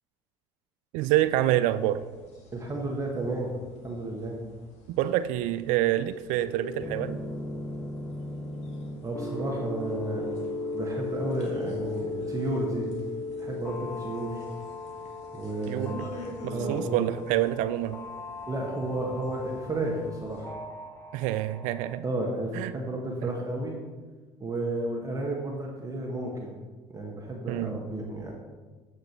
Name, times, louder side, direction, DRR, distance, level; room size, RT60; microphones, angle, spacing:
voice 1, 0.9-2.0 4.9-7.2 15.7-16.1 16.4-18.0 21.1-22.0 22.5-22.7 23.2-23.3 27.5-27.8, right 14 dB, 70° right, 13 dB, 0.4 m, -27 dB
sound 1, 1.0-20.5, equal, 55° left, 2.2 m, -49 dB
voice 2, 2.5-3.5 3.8-4.4 9.0-10.3 10.7-12.9 13.4-14.4 15.3-16.1 16.5-17.0 18.5-20.5 22.0-23.8 24.4-26.6 26.9-28.3, right 2 dB, 25° right, -1 dB, 1.6 m, -32 dB
sound 2, 6.4-21.9, left 2 dB, 15° left, 1.3 m, -37 dB
8.0 x 6.5 x 4.4 m, 1.3 s
hypercardioid pair, 75°, 13 cm